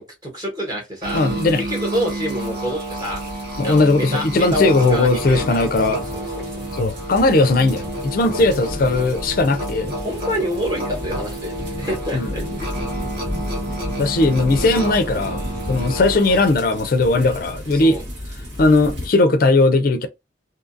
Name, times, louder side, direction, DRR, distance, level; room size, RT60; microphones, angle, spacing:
voice 1, 0.0-1.2 1.7-3.2 3.6-5.6 5.9-6.5 9.9-12.7 17.7-18.0, equal, 20° right, 1.1 m, -27 dB
Musical instrument, 1.0-16.6, right 1 dB, 55° right, 1.2 m, -30 dB
sound 1, 1.0-19.1, left 1 dB, 80° right, 1.5 m, -33 dB
voice 2, 1.1-1.6 3.6-6.1 6.7-9.9 12.1-12.3 14.0-15.4 15.7-18.0 18.6-20.1, left 2 dB, 50° left, 0.4 m, -18 dB
2.7 x 2.5 x 2.5 m
head